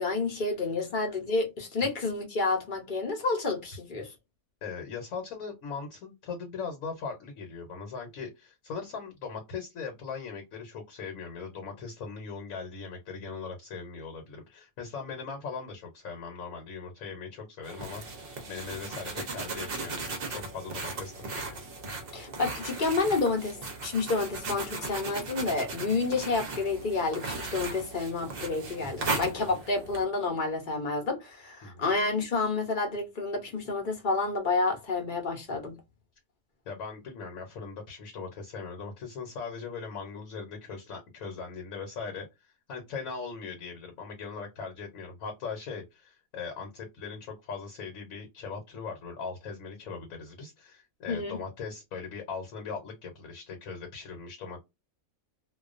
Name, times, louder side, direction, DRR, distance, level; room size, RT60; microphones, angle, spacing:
voice 1, 0.0-4.1 22.1-35.8 51.1-51.4, left 3 dB, 45° left, 0.7 m, -29 dB
voice 2, 4.6-21.6 29.0-29.5 31.6-31.8 36.7-54.6, left 5 dB, 70° left, 1.1 m, -40 dB
sound 1, 17.6-30.0, right 3 dB, 55° right, 0.7 m, -37 dB
2.3 x 2.3 x 2.4 m
omnidirectional pair, 1.5 m